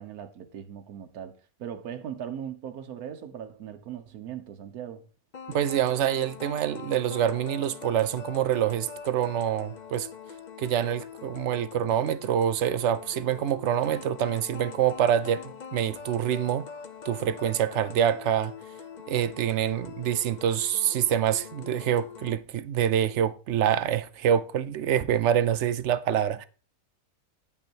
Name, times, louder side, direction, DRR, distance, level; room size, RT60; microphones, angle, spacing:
voice 1, 0.0-1.3 1.6-5.1, right 9 dB, 85° right, 1.3 m, -39 dB
sound 1, 5.3-22.3, left 6 dB, 40° left, 0.7 m, -43 dB
voice 2, 5.5-10.1 10.6-16.7 17.0-18.5 19.1-26.4, right 10 dB, 65° right, 0.7 m, -26 dB
9.3 x 5.6 x 4.4 m
omnidirectional pair, 1.5 m